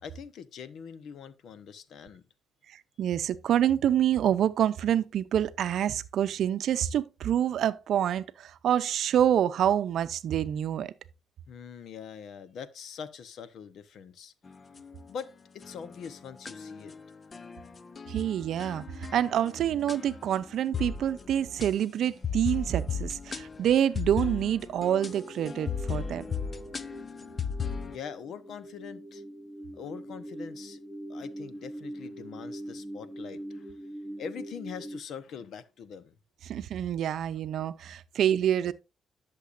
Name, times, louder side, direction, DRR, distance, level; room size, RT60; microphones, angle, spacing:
voice 1, 0.0-2.3 11.5-14.3 15.1-16.9 27.9-29.2 29.7-30.8 31.1-36.2, left 7 dB, 70° left, 0.9 m, -43 dB
voice 2, 2.7-10.9 18.1-26.2 36.5-38.7, right 10 dB, 70° right, 0.6 m, -27 dB
sound 1, 14.5-15.2 15.6-28.0, left 6 dB, 35° left, 0.6 m, -37 dB
sound 2, 25.0-35.0, right 1 dB, 5° right, 0.9 m, -43 dB
11.5 x 6.7 x 2.6 m
cardioid pair, 90°, 0 cm